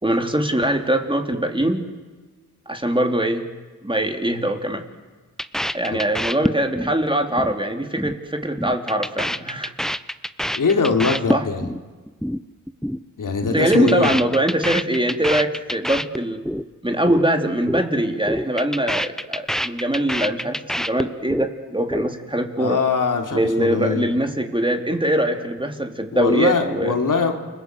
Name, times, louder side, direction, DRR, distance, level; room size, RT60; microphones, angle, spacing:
voice 1, 0.0-1.9 2.7-3.5 3.8-4.8 5.7-9.7 11.3-11.4 13.5-16.4 16.8-22.8 23.3-27.0, right 1 dB, 15° right, 4 dB, 3.4 m, -22 dB
sound 1, 5.4-6.9 7.2-7.5 7.8-8.2 8.4-11.8 12.1-12.4 12.7-13.0 13.3-16.6 16.9-17.3 17.5-17.9 18.1-21.5 21.8-22.4, equal, ahead, 1.0 m, -26 dB
voice 2, 10.6-11.7 13.2-14.1 22.6-24.1 26.1-27.3, left 4 dB, 70° left, 3 dB, 3.5 m, -22 dB
29.0 x 20.5 x 8.1 m, 1.3 s
cardioid pair, 50°, 33 cm